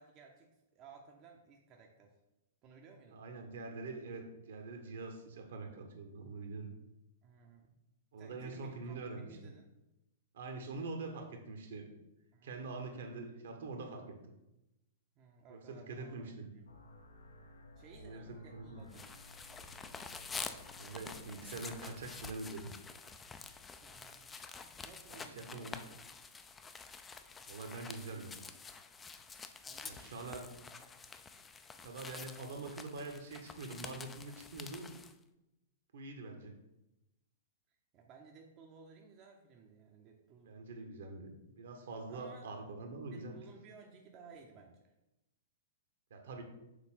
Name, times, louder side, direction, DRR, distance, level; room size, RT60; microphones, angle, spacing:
voice 1, 0.0-2.1 2.6-3.2 7.2-7.8 8.2-9.7 12.3-12.8 15.2-16.3 17.8-19.2 23.8-26.1 29.6-30.8 37.7-40.6 42.1-42.6 43.1-44.9, right 5 dB, 35° right, 1 dB, 0.7 m, -58 dB
voice 2, 3.1-6.7 8.1-9.3 10.3-11.9 12.4-14.2 15.5-16.5 18.0-18.9 20.8-22.7 25.1-25.8 27.5-28.3 29.8-30.4 31.8-34.9 35.9-36.6 40.4-43.4 46.1-46.4, right 3 dB, 60° right, 4 dB, 1.1 m, -44 dB
sound 1, 16.7-22.2, left 1 dB, 75° left, 0.8 m, -57 dB
sound 2, 18.9-35.1, left 5 dB, 15° left, 0.4 m, -48 dB
6.6 x 4.0 x 3.7 m, 0.92 s
figure-of-eight pair, 105°, 0 cm